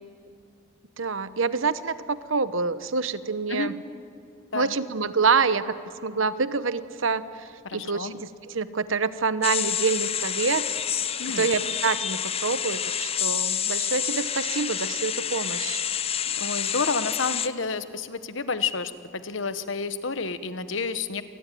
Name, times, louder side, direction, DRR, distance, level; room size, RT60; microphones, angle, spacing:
voice 1, 1.0-3.7 4.5-5.6 6.0-10.7 11.4-15.8, right 4 dB, 70° right, 14 dB, 1.0 m, -26 dB
voice 2, 7.6-8.1 11.2-11.5 16.3-21.2, left 4 dB, 65° left, 12 dB, 1.1 m, -30 dB
sound 1, 9.4-17.5, left 9 dB, 30° left, 0.7 m, -28 dB
27.0 x 19.0 x 9.2 m, 2.4 s
head